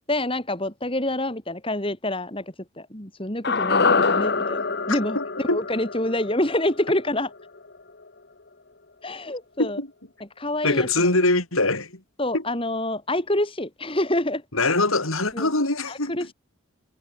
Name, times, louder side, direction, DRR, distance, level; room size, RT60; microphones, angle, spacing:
voice 1, 0.1-2.4 2.8-4.6 4.9-5.2 5.5-7.3 9.0-9.8 10.4-11.1 12.2-14.4 15.3-15.5 15.9-16.3, left 1 dB, 25° left, 3.0 m, -27 dB
sound 1, 3.4-7.8 8.0-8.1, left 4 dB, 50° left, 1.2 m, -25 dB
voice 2, 4.9-5.6 9.6-9.9 10.6-12.0 12.3-12.4 14.5-16.1, left 2 dB, 80° left, 6.9 m, -23 dB
head